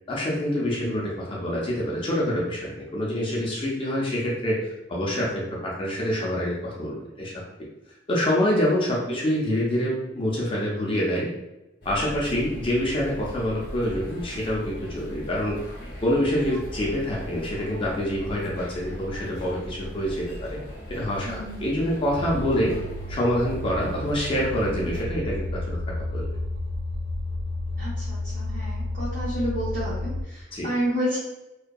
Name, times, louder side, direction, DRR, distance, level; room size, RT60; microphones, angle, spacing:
voice 1, 0.1-7.4 8.1-11.3 11.9-15.6 16.0-20.6 20.9-22.7 23.1-25.8 26.1-26.4 30.5-30.7, equal, 30° left, -4 dB, 0.4 m, -26 dB
sound 1, 11.8-25.0, equal, 65° left, 0.7 m, -39 dB
voice 2, 21.2-21.6 27.8-31.2, equal, 50° right, -9 dB, 0.7 m, -30 dB
sound 2, 22.1-30.2, left 1 dB, 80° right, 0.4 m, -31 dB
2.5 x 2.2 x 2.2 m, 0.99 s
head